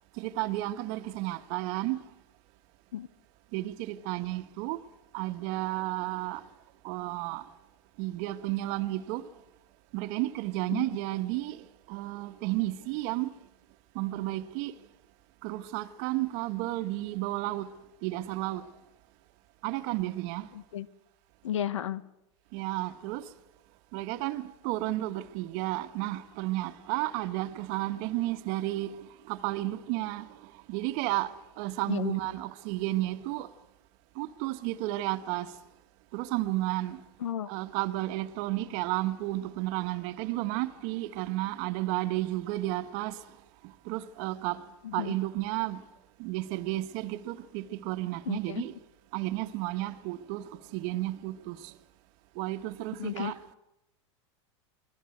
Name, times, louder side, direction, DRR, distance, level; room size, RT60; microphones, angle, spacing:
voice 1, 0.2-2.1 3.5-4.8 5.1-6.4 6.8-7.4 8.0-9.3 9.9-13.3 13.9-14.8 15.4-17.7 18.0-18.7 19.6-20.5 22.5-23.3 23.9-30.4 30.7-33.5 34.2-35.5 36.1-37.0 37.5-43.2 43.6-44.6 44.9-45.8 46.2-48.8 49.1-51.7 52.4-53.4, right 17 dB, 55° right, 1.4 m, -32 dB
voice 2, 20.5-20.9 21.4-22.0 31.9-32.1 37.2-37.5 44.8-45.1 48.3-48.6 53.0-53.3, left 11 dB, 85° left, 1.1 m, -33 dB
28.0 x 21.0 x 8.0 m
hypercardioid pair, 115°, 15 cm